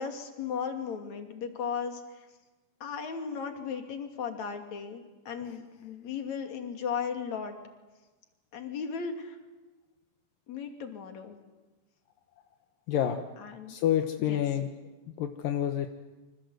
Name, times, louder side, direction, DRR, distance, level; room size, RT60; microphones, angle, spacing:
voice 1, 0.0-2.0 2.8-7.5 8.5-9.4 10.5-11.4 13.4-13.8 14.3-14.4, left 6 dB, 55° left, 4 dB, 3.8 m, -36 dB
voice 2, 12.9-13.2 13.7-14.7 15.2-15.9, left 10 dB, 80° left, 6 dB, 2.8 m, -28 dB
29.5 x 25.5 x 8.0 m, 1.2 s
omnidirectional pair, 4.0 m